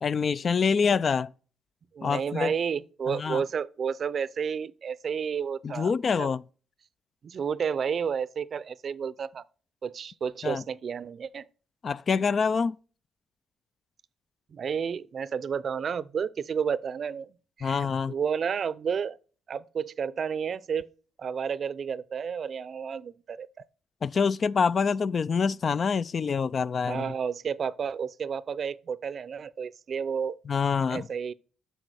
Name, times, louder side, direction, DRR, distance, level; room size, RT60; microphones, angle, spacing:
voice 1, 0.0-1.3 2.0-2.5 3.1-3.4 5.6-6.4 10.4-10.6 11.8-12.8 17.6-18.1 24.0-27.1 30.5-31.1, left 5 dB, 45° left, 0.4 m, -26 dB
voice 2, 1.9-6.3 7.2-9.4 9.8-11.4 14.5-19.2 19.5-20.9 21.2-23.5 26.9-30.4 30.9-31.3, right 7 dB, 50° right, 0.5 m, -31 dB
9.0 x 5.8 x 6.3 m
cardioid pair, 90°, 0 cm